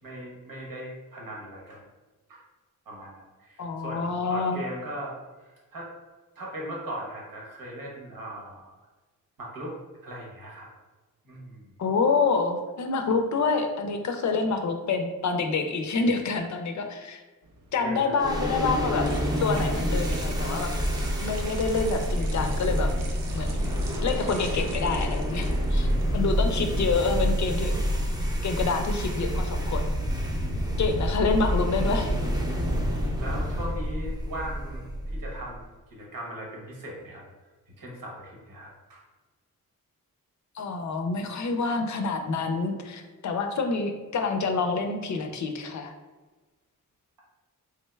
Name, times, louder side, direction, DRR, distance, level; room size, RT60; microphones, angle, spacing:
voice 1, 0.0-1.8 2.3-2.4 2.9-5.9 6.3-8.8 9.4-9.8 10.0-10.7 11.2-11.7 17.8-18.5 25.7-26.2 28.5-28.9 33.2-35.6 35.9-37.2 37.7-39.0, right 1 dB, 85° right, -3 dB, 1.1 m, -39 dB
voice 2, 3.6-4.6 11.8-17.2 17.7-19.1 19.4-20.7 21.2-22.9 23.3-23.7 24.0-25.9 26.1-27.8 28.4-29.9 30.8-32.1 40.6-45.9, left 4 dB, 55° left, 5 dB, 0.5 m, -27 dB
sound 1, 17.4-26.0, right 4 dB, 70° right, 0.5 m, -46 dB
sound 2, 18.2-35.6, equal, 10° right, 0.4 m, -28 dB
3.5 x 3.2 x 2.2 m, 1.3 s
wide cardioid pair, 120°, 34 cm